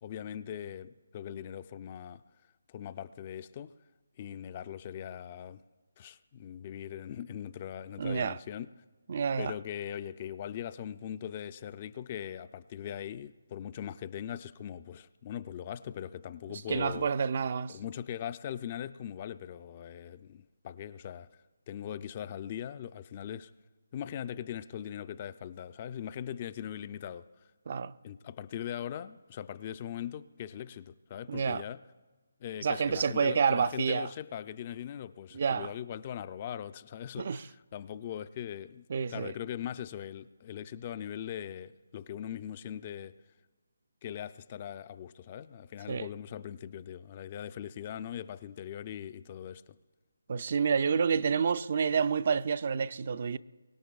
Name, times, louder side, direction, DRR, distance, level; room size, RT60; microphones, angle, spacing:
voice 1, 0.0-2.2 2.7-3.8 4.2-5.6 6.0-8.7 9.4-17.1 17.7-21.3 21.7-23.5 23.9-27.3 28.0-31.8 32.4-43.2 44.0-49.8, left 10 dB, 30° left, 0.4 m, -40 dB
voice 2, 8.0-8.4 9.1-9.5 16.7-17.8 27.7-27.9 31.3-31.6 32.6-34.1 35.3-35.7 37.2-37.4 38.9-39.3 45.9-46.1 50.3-53.4, right 6 dB, 45° right, 0.4 m, -29 dB
23.5 x 20.0 x 2.3 m
figure-of-eight pair, 155°, 0 cm